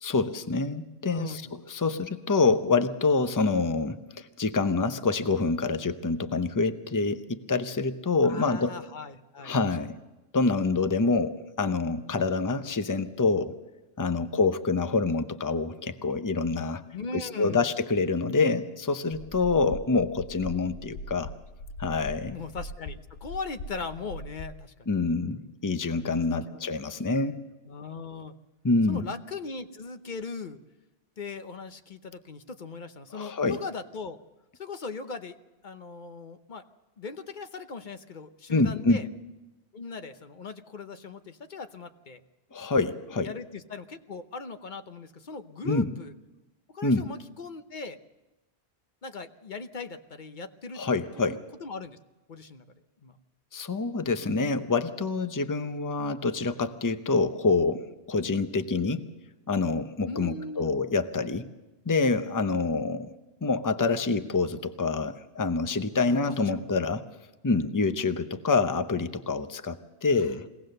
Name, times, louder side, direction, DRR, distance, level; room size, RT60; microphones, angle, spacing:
voice 1, 0.0-8.7 9.4-10.0 10.3-13.5 14.0-16.8 17.1-21.3 21.8-22.4 24.9-27.4 28.6-29.1 33.1-33.6 38.5-39.0 42.5-43.3 45.6-45.9 46.8-47.1 50.7-51.4 53.5-59.0 59.5-61.5 61.9-63.1 63.4-67.1 67.4-70.4, left 3 dB, 20° left, 10 dB, 0.7 m, -26 dB
voice 2, 1.1-1.6 8.2-9.5 14.1-14.4 16.9-17.7 22.3-24.9 26.3-26.6 27.7-28.3 28.9-30.6 31.2-34.2 34.6-35.4 35.6-36.6 37.0-39.1 39.7-42.2 43.2-46.1 46.7-48.0 49.0-50.8 51.2-52.0 52.3-52.6 53.0-53.2 60.1-60.7 66.1-66.7 70.2-70.4, left 4 dB, 50° left, 9 dB, 1.0 m, -39 dB
sound 1, 19.1-24.6, left 1 dB, 80° left, 1.1 m, -41 dB
22.0 x 17.5 x 6.6 m, 1.1 s
omnidirectional pair, 1.1 m